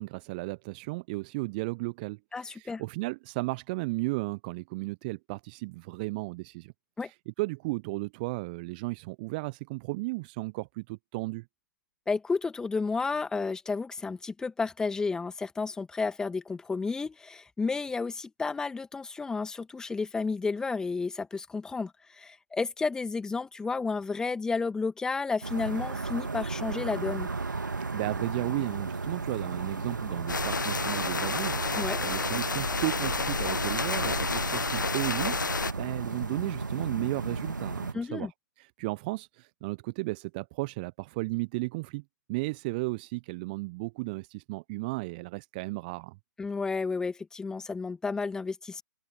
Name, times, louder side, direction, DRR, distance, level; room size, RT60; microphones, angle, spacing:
voice 1, 0.0-6.7 7.0-11.4 27.9-38.3 38.6-42.0 42.3-46.2, right 24 dB, 25° right, 1.1 m, -34 dB
voice 2, 2.3-2.8 7.0-7.1 12.1-27.3 31.8-32.0 37.9-38.3 46.4-48.8, left 4 dB, 5° left, 2.4 m, -32 dB
sound 1, 25.4-37.9, right 4 dB, 70° right, 2.6 m, -34 dB
sound 2, 30.3-35.7, left 4 dB, 70° left, 0.7 m, -30 dB
figure-of-eight pair, 130°, 10 cm